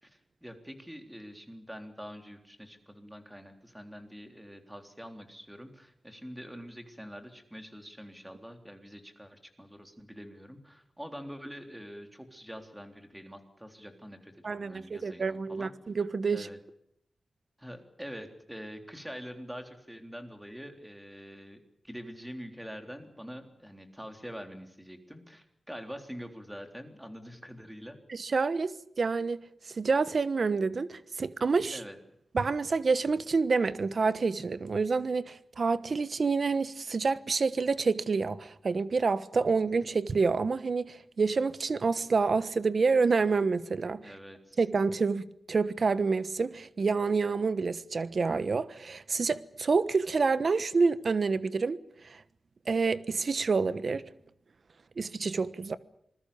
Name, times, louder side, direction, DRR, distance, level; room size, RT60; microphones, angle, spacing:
voice 1, 0.0-15.7 16.3-16.6 17.6-28.0 31.7-32.0 44.0-44.6, equal, 5° right, 3.6 m, -45 dB
voice 2, 14.4-16.5 28.1-29.4 29.7-31.8 32.3-44.1 44.6-51.8 52.0-52.2 52.7-54.0 55.0-55.8, right 4 dB, 50° right, 1.2 m, -28 dB
27.0 x 20.5 x 7.0 m
wide cardioid pair, 130°, 0 cm